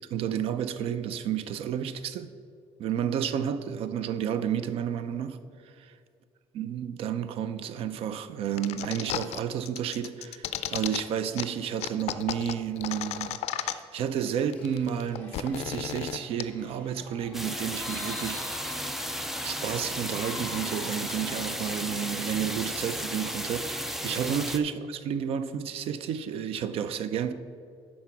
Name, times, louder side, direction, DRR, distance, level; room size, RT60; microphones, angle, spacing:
voice 1, 0.1-2.3 2.8-5.4 5.6-5.7 6.5-18.6 19.4-27.3, right 8 dB, 60° right, 0.5 m, -31 dB
sound 1, 8.6-9.4 9.7-11.0 11.4-11.5 11.8-14.0 14.3-14.4 14.5-16.4, left 12 dB, 80° left, 0.4 m, -33 dB
sound 2, 14.2-23.9, left 3 dB, 15° left, 0.9 m, -46 dB
sound 3, 17.3-24.6, equal, 5° right, 0.3 m, -34 dB
11.5 x 4.3 x 5.9 m
cardioid pair, 175°, 11 cm